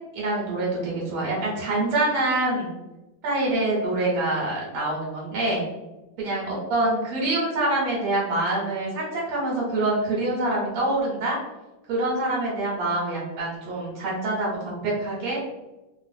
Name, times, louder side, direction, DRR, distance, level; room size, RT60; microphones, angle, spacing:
voice 1, 0.1-2.7 3.2-5.6 6.2-11.4 11.9-15.4, right 2 dB, 85° right, -5 dB, 1.7 m, -25 dB
3.7 x 2.2 x 2.6 m, 1.0 s
omnidirectional pair, 2.2 m